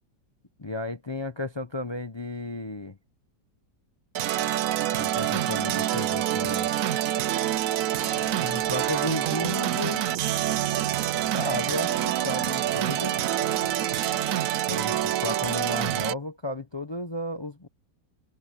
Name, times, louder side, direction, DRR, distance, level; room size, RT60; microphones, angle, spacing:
voice 1, 0.6-3.0 5.0-6.7 8.4-10.1 11.3-13.2 14.7-17.7, left 1 dB, 45° left, 0.3 m, -33 dB
sound 1, 4.1-16.1, right 12 dB, 70° right, 0.8 m, -26 dB
sound 2, 8.0-14.3, left 7 dB, 75° left, 2.2 m, -47 dB
omnidirectional pair, 1.9 m